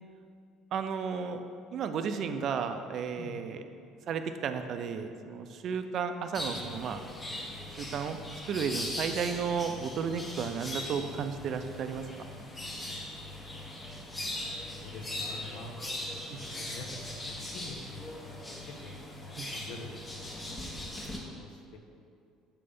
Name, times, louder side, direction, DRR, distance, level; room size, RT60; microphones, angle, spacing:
voice 1, 0.7-1.4 1.7-3.6 4.1-7.0 7.8-8.2 8.5-12.0 16.3-16.4 19.3-19.5, right 6 dB, 55° right, 8 dB, 0.4 m, -33 dB
sound 1, 6.3-21.2, left 1 dB, 25° left, 1.3 m, -40 dB
voice 2, 13.6-15.8 16.3-17.2 17.5-20.4 20.7-21.8, left 3 dB, 75° left, 3 dB, 0.7 m, -48 dB
6.8 x 3.3 x 5.3 m, 2.4 s
supercardioid pair, 80°, 0 cm